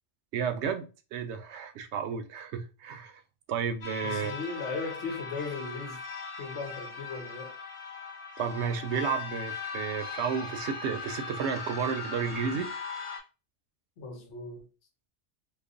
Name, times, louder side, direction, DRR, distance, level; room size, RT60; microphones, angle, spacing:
voice 1, 0.3-3.1 3.5-4.3 8.4-12.7, right 6 dB, 75° right, 0.8 m, -32 dB
sound 1, 3.8-13.2, left 5 dB, 30° left, 0.9 m, -39 dB
voice 2, 4.0-6.0 6.4-7.6 14.0-14.7, left 4 dB, 80° left, 1.1 m, -37 dB
3.2 x 2.1 x 3.7 m
omnidirectional pair, 1.2 m